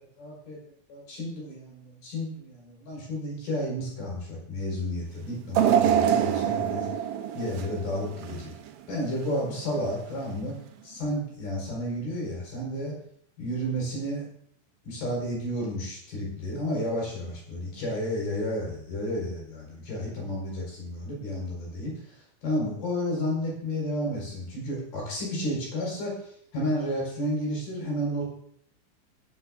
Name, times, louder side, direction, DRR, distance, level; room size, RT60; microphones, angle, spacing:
voice 1, 0.2-0.6 0.9-6.9 7.3-8.5 8.9-10.6 10.8-12.9 13.4-14.2 14.8-22.2 22.4-26.2 26.5-28.2, equal, 50° left, -2 dB, 6.6 m, -31 dB
sound 1, 5.5-8.7 9.1-9.3 10.3-10.4, right 10 dB, 85° right, 2.1 m, -25 dB
16.5 x 8.4 x 3.8 m, 0.67 s
omnidirectional pair, 5.6 m